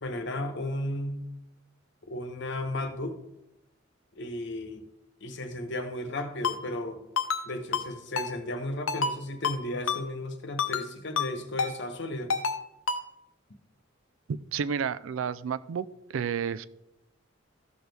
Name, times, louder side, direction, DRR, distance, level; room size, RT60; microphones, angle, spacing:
voice 1, 0.0-1.2 2.1-3.2 4.1-4.9 5.2-7.0 7.4-12.3, left 1 dB, 60° left, 1.0 m, -34 dB
Ringtone, 6.4-6.6 7.2-7.4 7.7-7.9 8.2-8.3 8.9-9.1 9.4-9.6 9.9-10.0 10.6-10.9 11.2-11.3 11.6-11.7 12.3-12.6 12.9-13.0, left 5 dB, 85° left, 0.7 m, -28 dB
voice 2, 14.3-15.9 16.1-16.7, right 7 dB, 75° right, 0.4 m, -31 dB
14.0 x 6.2 x 3.4 m
head